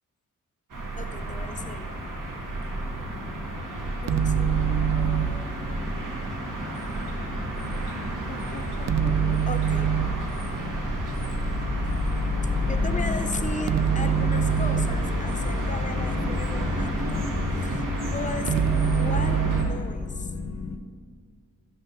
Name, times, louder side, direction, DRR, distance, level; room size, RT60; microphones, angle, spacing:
sound 1, 0.7-19.6, right 1 dB, 90° right, 2.0 m, -31 dB
voice 1, 1.0-2.0 4.0-5.5 8.3-10.0 12.6-17.2 17.5-20.3, left 3 dB, 25° left, 8 dB, 0.7 m, -37 dB
sound 2, 4.1-5.5 8.9-10.3 13.7-15.1 18.5-19.9, right 8 dB, 60° right, 0.5 m, -24 dB
sound 3, 10.6-20.8, left 3 dB, 60° left, 0.9 m, -31 dB
13.5 x 6.1 x 6.7 m, 2.1 s
wide cardioid pair, 130°, 31 cm